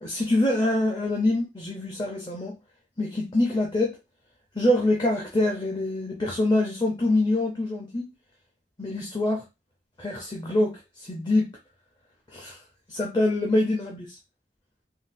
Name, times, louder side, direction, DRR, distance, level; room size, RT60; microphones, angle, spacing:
voice 1, 0.0-2.5 3.0-4.0 4.5-8.1 8.8-9.4 10.0-11.5 12.3-12.6 12.9-14.0, left 1 dB, 25° left, 0.6 m, -25 dB
3.7 x 2.1 x 2.6 m
head